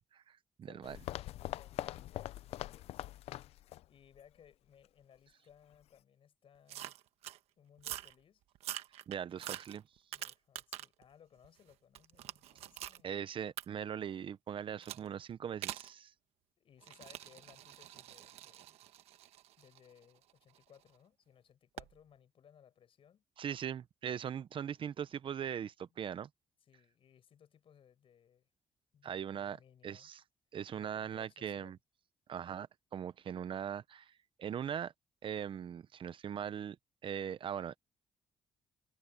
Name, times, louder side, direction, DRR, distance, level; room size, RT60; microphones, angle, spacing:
voice 1, 0.1-1.0 9.1-9.8 13.0-16.1 23.4-26.3 29.0-29.6 29.8-30.2 30.5-31.8 32.3-32.7 32.9-34.1 34.4-34.9 35.2-36.8 37.0-37.8, right 8 dB, 55° right, 0.9 m, -40 dB
voice 2, 0.6-1.0 1.5-3.2 3.8-7.0 7.6-8.4 10.1-13.2 16.6-18.8 19.6-23.2 26.6-28.5 28.9-30.1 30.7-31.8, left 8 dB, 60° left, 6.3 m, -63 dB
sound 1, 0.8-3.8 4.1-4.2 4.8-4.9, left 14 dB, 80° left, 0.6 m, -43 dB
sound 2, 6.7-7.4 7.8-8.1 8.5-11.0 11.4-13.0 13.6-13.7 14.8-15.1 15.6-15.9 16.8-20.8 21.8-21.9, right 13 dB, 90° right, 1.2 m, -45 dB
cardioid pair, 85°, 10 cm